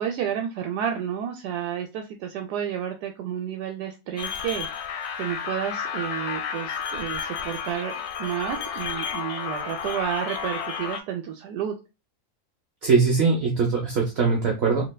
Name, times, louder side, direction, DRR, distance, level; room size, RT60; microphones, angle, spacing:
voice 1, 0.0-4.8 5.1-7.9 8.2-11.7, right 9 dB, 85° right, 3 dB, 1.1 m, -31 dB
sound 1, 4.2-11.0, left 6 dB, 75° left, 1.1 m, -32 dB
voice 2, 12.8-14.9, right 4 dB, 55° right, 0 dB, 0.7 m, -21 dB
3.2 x 2.8 x 2.2 m, 0.26 s
omnidirectional pair, 1.7 m